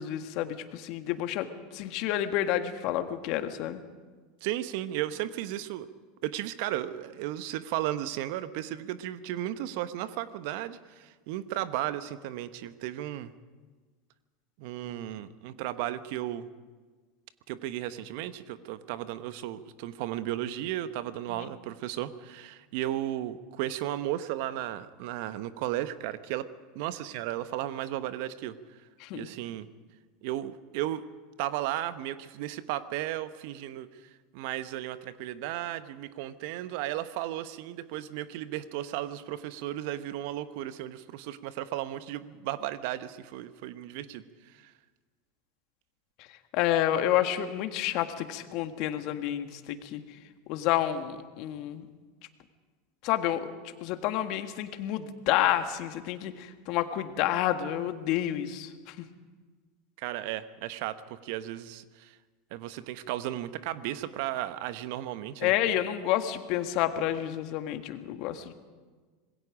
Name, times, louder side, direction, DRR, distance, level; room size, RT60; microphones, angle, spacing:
voice 1, 0.0-3.8 21.3-21.5 29.0-29.3 46.2-50.2 50.5-51.9 53.0-53.5 53.8-59.0 65.4-68.5, left 12 dB, 55° left, 8 dB, 1.7 m, -29 dB
voice 2, 4.4-5.9 6.2-13.3 14.6-16.5 17.5-26.5 26.7-28.6 29.1-29.7 30.2-31.0 31.4-44.7 60.0-62.2 62.5-65.5, right 13 dB, 60° right, 13 dB, 1.1 m, -35 dB
26.0 x 21.0 x 5.1 m, 1.4 s
hypercardioid pair, 85°, 0 cm